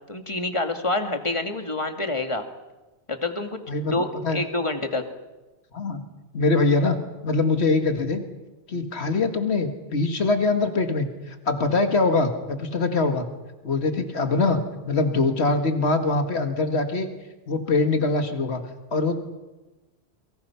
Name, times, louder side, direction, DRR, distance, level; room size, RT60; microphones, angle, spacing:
voice 1, 0.1-2.4 3.1-5.0, left 2 dB, 30° left, 6 dB, 2.1 m, -27 dB
voice 2, 3.7-4.4 5.7-6.0 6.3-7.0 7.2-8.2 8.7-13.3 13.6-14.6 14.9-17.1 17.5-18.6 18.9-19.1, left 3 dB, 75° left, 6 dB, 2.2 m, -23 dB
28.5 x 24.0 x 5.8 m, 1.1 s
omnidirectional pair, 1.1 m